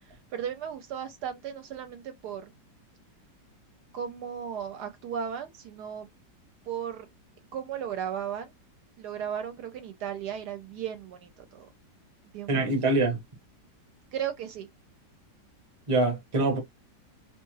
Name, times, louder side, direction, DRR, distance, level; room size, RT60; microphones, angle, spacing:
voice 1, 0.3-2.5 3.9-6.1 6.7-7.1 7.5-8.5 9.0-11.7 12.3-12.7 14.1-14.7, right 8 dB, 75° right, 1.1 m, -35 dB
voice 2, 12.5-13.2 15.9-16.6, right 2 dB, 25° right, 0.7 m, -24 dB
2.7 x 2.3 x 3.0 m
omnidirectional pair, 1.9 m